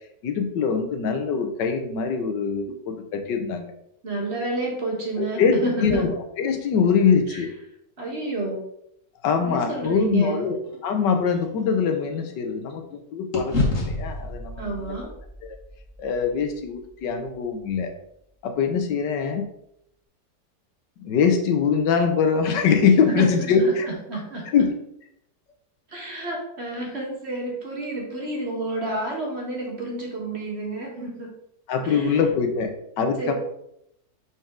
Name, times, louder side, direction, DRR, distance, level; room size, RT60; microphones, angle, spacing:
voice 1, 0.2-3.7 5.2-5.5 5.8-7.5 9.2-10.6 10.8-14.7 15.4-15.6 16.0-17.9 18.4-19.5 21.0-23.8 24.5-24.7 31.7-32.7 33.0-33.3, left 6 dB, 85° left, 6 dB, 1.5 m, -23 dB
voice 2, 4.0-6.1 7.3-7.4 8.0-8.6 9.4-10.5 14.6-15.1 23.1-24.5 25.9-31.3 31.8-32.2 33.2-33.3, right 2 dB, 40° right, -1 dB, 1.7 m, -30 dB
sound 1, 10.6-12.9 13.3-17.6, left 2 dB, 50° left, 1.8 m, -31 dB
6.4 x 5.5 x 3.6 m, 0.75 s
omnidirectional pair, 1.9 m